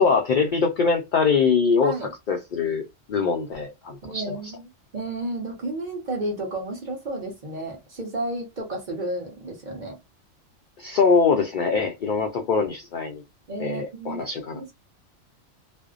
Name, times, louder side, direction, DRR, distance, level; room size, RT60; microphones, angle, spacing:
voice 1, 0.0-4.4 10.8-13.2 13.6-14.6, left 5 dB, 70° left, 0.4 m, -23 dB
voice 2, 4.0-4.7 4.9-10.0 13.5-14.2 14.5-14.7, right 1 dB, 40° right, 0.9 m, -32 dB
2.5 x 2.1 x 2.4 m
omnidirectional pair, 1.3 m